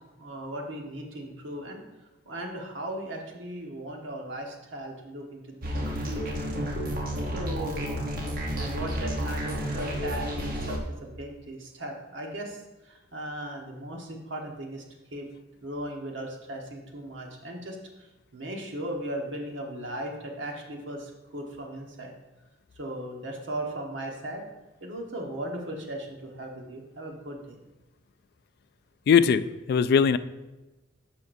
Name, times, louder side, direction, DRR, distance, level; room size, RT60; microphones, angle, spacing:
voice 1, 0.2-1.8 2.2-6.4 7.3-8.0 8.6-14.8 15.1-15.3 15.6-22.1 22.8-24.5 24.8-27.6, right 1 dB, 75° right, 1 dB, 1.3 m, -37 dB
sound 1, 5.6-10.8, equal, 50° right, 1.0 m, -31 dB
voice 2, 29.1-30.2, left 6 dB, 55° left, 13 dB, 0.3 m, -20 dB
10.5 x 5.9 x 2.6 m, 1.1 s
head